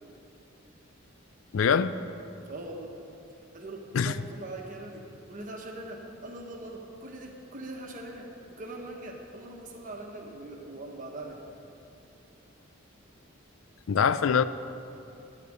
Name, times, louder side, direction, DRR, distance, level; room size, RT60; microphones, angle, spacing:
voice 1, 1.5-1.9 3.9-4.1 13.9-14.4, left 6 dB, 75° left, 14 dB, 0.4 m, -23 dB
voice 2, 2.5-2.9 3.4-11.4, right 2 dB, 40° right, 1 dB, 1.4 m, -42 dB
10.0 x 6.8 x 8.7 m, 2.7 s
head